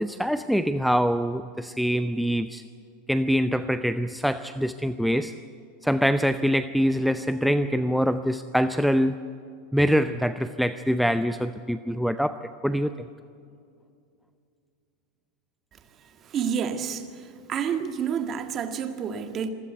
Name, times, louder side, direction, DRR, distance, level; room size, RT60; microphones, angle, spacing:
voice 1, 0.0-2.6 3.1-5.3 5.8-9.2 9.7-12.9, equal, ahead, 11 dB, 0.6 m, -24 dB
voice 2, 16.2-17.0 17.5-19.5, right 7 dB, 35° right, 7 dB, 1.8 m, -29 dB
26.5 x 15.5 x 8.1 m, 2.4 s
figure-of-eight pair, 85°, 0 cm